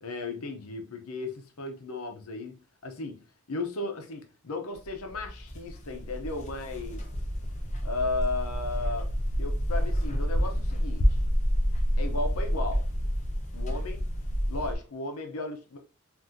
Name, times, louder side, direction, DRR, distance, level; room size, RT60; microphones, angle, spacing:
voice 1, 0.0-3.2 3.5-7.0 7.8-9.1 9.4-11.2 12.0-12.8 13.5-14.0 14.5-15.8, left 2 dB, 90° left, 0.8 m, -35 dB
sound 1, 4.7-14.8, equal, 35° left, 0.6 m, -29 dB
3.7 x 2.7 x 2.7 m
head